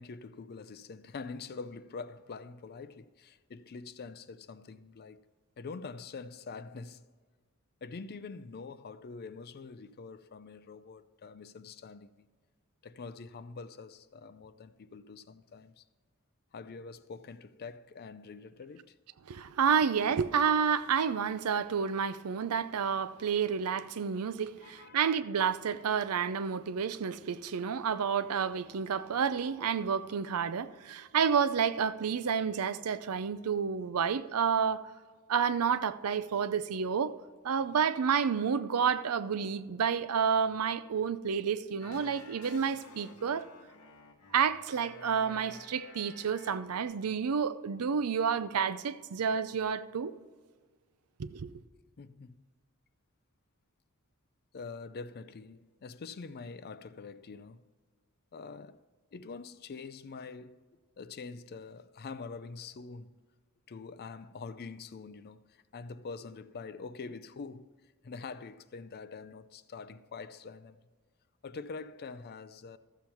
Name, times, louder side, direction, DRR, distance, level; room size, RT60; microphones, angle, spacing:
voice 1, 0.0-5.2 5.6-7.1 7.8-12.3 12.8-15.8 16.5-19.0 24.6-25.1 52.0-52.4 54.5-57.7 58.3-58.8 59.1-60.6 61.0-63.2 63.7-67.7 68.0-70.8 71.4-72.8, left 4 dB, 45° left, 0.4 m, -45 dB
voice 2, 19.3-34.9 35.3-37.1 37.4-43.5 44.3-50.1 51.2-51.5, right 7 dB, 80° right, 0.5 m, -30 dB
sound 1, 41.8-46.8, left 3 dB, 65° left, 1.0 m, -52 dB
14.0 x 7.1 x 4.5 m
head